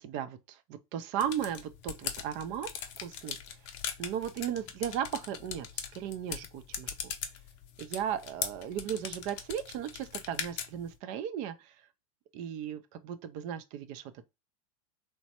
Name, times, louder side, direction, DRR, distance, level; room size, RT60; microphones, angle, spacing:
voice 1, 0.0-2.7 3.0-3.4 4.0-5.7 5.9-6.9 7.8-11.7 12.3-14.2, right 9 dB, 45° right, 0.4 m, -36 dB
sound 1, 1.2-11.0, left 9 dB, 55° left, 0.5 m, -40 dB
3.1 x 2.1 x 2.8 m
hypercardioid pair, 110°, 18 cm